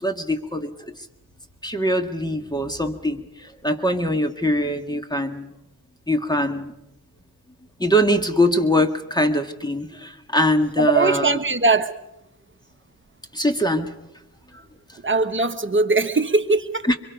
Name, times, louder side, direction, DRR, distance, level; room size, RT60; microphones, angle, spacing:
voice 1, 0.0-0.7 1.6-3.2 3.6-5.5 6.1-6.7 7.8-11.4 13.3-13.9 16.9-17.0, equal, 10° left, 7 dB, 1.8 m, -22 dB
voice 2, 10.8-12.0 14.5-14.6 15.0-16.9, right 3 dB, 30° right, 8 dB, 1.3 m, -21 dB
24.5 x 22.5 x 5.3 m, 0.87 s
cardioid pair, 65°, 38 cm